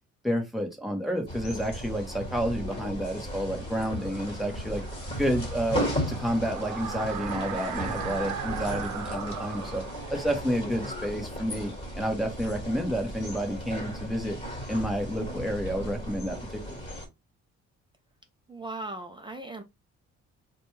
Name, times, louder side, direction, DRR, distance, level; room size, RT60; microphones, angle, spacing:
voice 1, 0.2-4.8 5.2-9.8 10.1-14.4 14.7-16.6, equal, ahead, 1.1 m, -30 dB
sound 1, 1.3-17.1, equal, 20° left, 1.6 m, -36 dB
sound 2, 3.5-12.2, right 7 dB, 80° right, 0.7 m, -39 dB
voice 2, 18.5-19.6, right 2 dB, 15° right, 0.4 m, -38 dB
4.2 x 2.3 x 3.0 m
cardioid pair, 130°, 30 cm